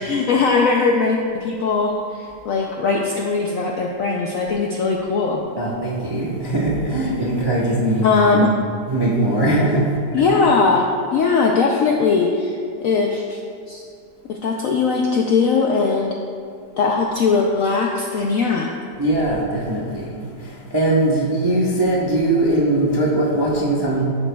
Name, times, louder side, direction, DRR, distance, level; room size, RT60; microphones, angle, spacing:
voice 1, 0.0-1.9 2.2-5.4 8.0-8.5 10.1-12.5 12.8-13.4 13.7-13.8 14.3-16.1 16.8-18.7, left 4 dB, 75° left, 0 dB, 0.8 m, -19 dB
voice 2, 5.6-8.5 8.9-9.8 10.2-10.3 19.0-20.0 20.7-24.0, right 1 dB, 30° right, -5 dB, 0.5 m, -20 dB
11.0 x 7.2 x 2.3 m, 2.3 s
omnidirectional pair, 1.9 m